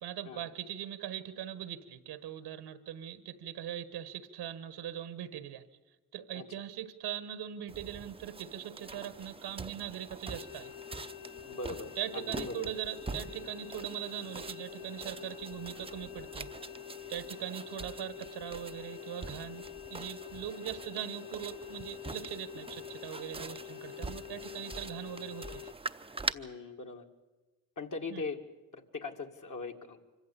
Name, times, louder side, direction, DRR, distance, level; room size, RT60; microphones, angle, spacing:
voice 1, 0.0-5.6 6.1-10.7 12.0-16.5 17.1-19.6 19.9-25.6 28.1-28.2, right 11 dB, 85° right, 12 dB, 1.4 m, -41 dB
sound 1, 7.7-26.3, right 3 dB, 15° right, 0.7 m, -44 dB
sound 2, 10.3-25.7, left 16 dB, 90° left, 0.7 m, -47 dB
voice 2, 11.5-12.7 26.3-27.1 27.8-28.4 28.7-30.0, left 4 dB, 50° left, 3 dB, 2.2 m, -40 dB
25.0 x 14.5 x 8.6 m, 1.2 s
cardioid pair, 65°, 40 cm